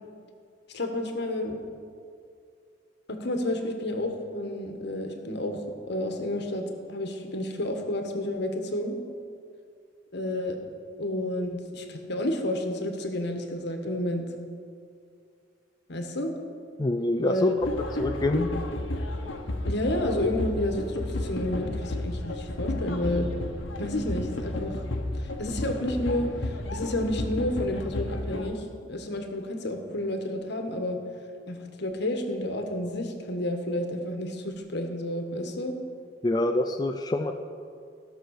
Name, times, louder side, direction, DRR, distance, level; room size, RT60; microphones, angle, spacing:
voice 1, 0.7-1.6 3.1-8.9 10.1-10.6 11.0-14.2 15.9-16.3 17.2-17.7 19.6-23.3 23.8-24.7 25.2-28.6 28.9-31.0 31.5-35.8, left 1 dB, 65° left, 5 dB, 1.3 m, -30 dB
voice 2, 16.8-17.6 18.0-18.5 36.2-37.3, left 1 dB, 20° left, 5 dB, 0.4 m, -26 dB
sound 1, 17.6-28.5, left 1 dB, 85° left, 1.1 m, -32 dB
15.5 x 6.3 x 6.4 m, 2.3 s
head